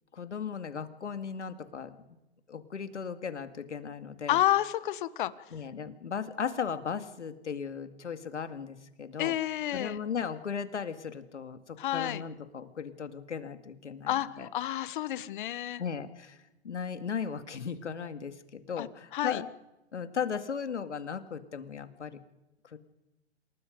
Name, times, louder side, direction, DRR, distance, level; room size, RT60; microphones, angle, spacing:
voice 1, 0.1-2.0 2.5-4.4 5.5-9.3 9.7-14.5 15.8-16.4 16.6-19.5 19.9-22.2 22.7-22.8, left 6 dB, 90° left, 9 dB, 2.2 m, -37 dB
voice 2, 4.3-5.3 9.2-10.0 11.8-12.2 14.1-15.8 18.8-18.9 19.1-19.4, left 13 dB, 45° left, 16 dB, 1.2 m, -30 dB
28.0 x 19.0 x 5.2 m, 0.96 s
hypercardioid pair, 145°, 34 cm